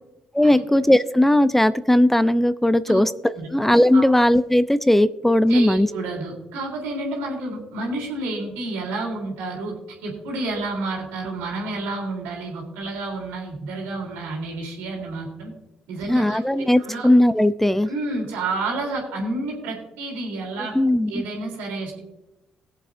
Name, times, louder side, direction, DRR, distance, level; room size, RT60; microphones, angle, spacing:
voice 1, 0.3-3.1 3.5-5.9 16.1-17.9 20.7-21.1, left 1 dB, 5° left, 14 dB, 0.5 m, -18 dB
voice 2, 5.5-9.8 10.0-15.5 15.9-17.1 17.9-20.7 21.1-22.0, right 2 dB, 80° right, -1 dB, 3.3 m, -30 dB
21.5 x 7.3 x 2.6 m, 0.97 s
hypercardioid pair, 50°, 3 cm